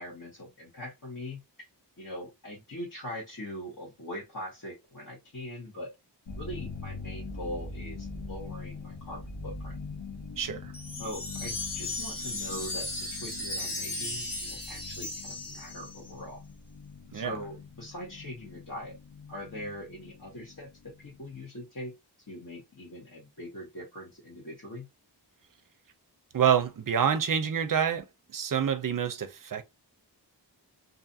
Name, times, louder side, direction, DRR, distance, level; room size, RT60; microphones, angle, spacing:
voice 1, 0.0-1.4 2.0-5.9 6.4-9.8 11.0-16.4 17.1-18.9 19.3-21.9 22.3-24.9, left 1 dB, 50° left, 1.1 m, -41 dB
sound 1, 6.3-21.5, left 3 dB, 90° left, 0.8 m, -43 dB
voice 2, 10.4-10.7 17.1-17.3 26.3-28.0 28.3-29.6, right 8 dB, 50° right, 0.5 m, -27 dB
Wind chime, 10.7-16.1, left 2 dB, 75° left, 1.4 m, -36 dB
2.6 x 2.4 x 2.6 m
wide cardioid pair, 65°, 41 cm